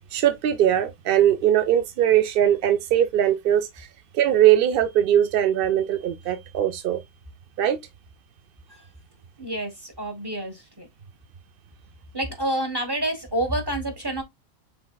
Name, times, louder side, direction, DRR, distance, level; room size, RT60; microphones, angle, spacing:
voice 1, 0.1-3.9 4.1-7.0 7.6-7.8, right 11 dB, 65° right, 0.5 m, -20 dB
voice 2, 9.4-10.9 12.1-14.2, right 1 dB, 20° right, 1.2 m, -28 dB
6.0 x 3.5 x 2.3 m
omnidirectional pair, 1.4 m